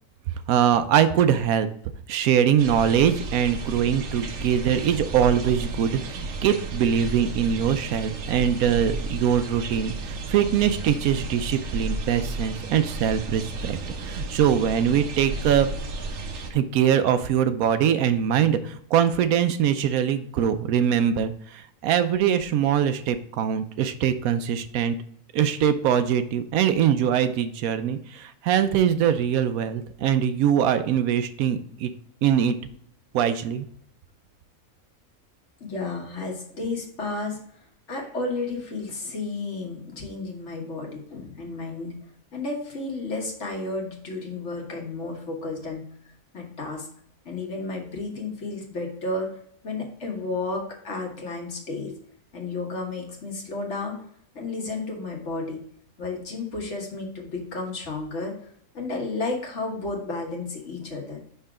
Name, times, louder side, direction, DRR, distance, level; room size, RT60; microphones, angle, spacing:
voice 1, 0.5-1.7 2.1-15.7 16.5-25.0 25.3-31.9 32.2-32.6 33.1-33.7, right 9 dB, 80° right, 11 dB, 1.0 m, -22 dB
sound 1, 2.6-16.5, right 3 dB, 60° right, 0.9 m, -33 dB
voice 2, 35.6-37.4 37.9-42.0 42.3-45.8 46.3-46.9 47.2-49.3 49.6-51.9 52.3-54.0 54.3-55.6 56.0-58.3 58.7-61.2, left 3 dB, 55° left, 0 dB, 1.6 m, -32 dB
5.6 x 3.8 x 4.8 m, 0.66 s
omnidirectional pair, 1.5 m